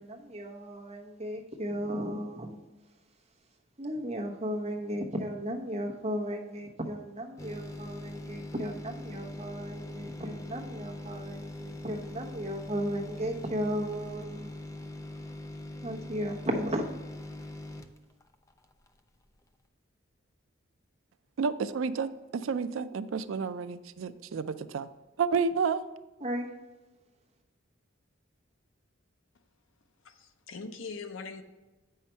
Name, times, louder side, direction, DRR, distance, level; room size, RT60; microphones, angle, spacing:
voice 1, 0.0-2.6 3.8-14.6 15.8-16.9 26.2-26.5, equal, 30° right, 1.1 m, -35 dB
sound 1, 7.4-19.0 19.4-19.5, left 1 dB, 15° left, 0.4 m, -42 dB
voice 2, 21.4-24.9 25.2-25.8, right 5 dB, 80° right, 0.4 m, -30 dB
voice 3, 30.0-31.4, left 4 dB, 75° left, 0.7 m, -41 dB
8.4 x 5.7 x 4.4 m
head